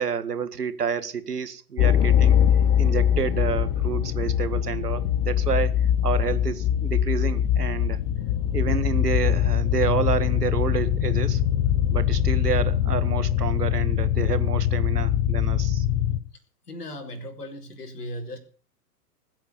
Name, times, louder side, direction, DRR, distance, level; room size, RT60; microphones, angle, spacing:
voice 1, 0.0-2.4 2.8-5.7 6.0-8.0 8.5-11.4 11.9-15.9, right 6 dB, 75° right, 1.9 m, -29 dB
sound 1, 1.8-16.2, left 10 dB, 30° left, 1.0 m, -22 dB
sound 2, 8.2-13.4, left 10 dB, 45° left, 3.3 m, -39 dB
voice 2, 16.7-18.4, left 1 dB, 75° left, 4.5 m, -37 dB
21.0 x 8.4 x 7.2 m
figure-of-eight pair, 110°, 48 cm